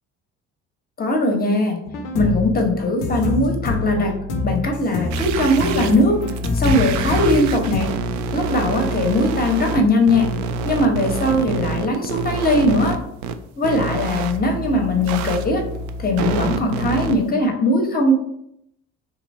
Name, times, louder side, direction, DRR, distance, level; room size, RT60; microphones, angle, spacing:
voice 1, 1.0-1.8 2.1-4.1 4.4-6.2 6.5-7.9 8.3-10.3 10.6-13.0 13.6-15.6 16.0-18.1, left 1 dB, 25° left, 2 dB, 1.0 m, -20 dB
sound 1, 1.9-7.8, left 3 dB, 60° left, 0.8 m, -25 dB
sound 2, 5.1-9.8 10.1-13.0 13.2-13.3 13.6-17.1, right 3 dB, 50° right, 0.5 m, -26 dB
3.4 x 2.7 x 4.2 m, 0.76 s
figure-of-eight pair, 50°, 39 cm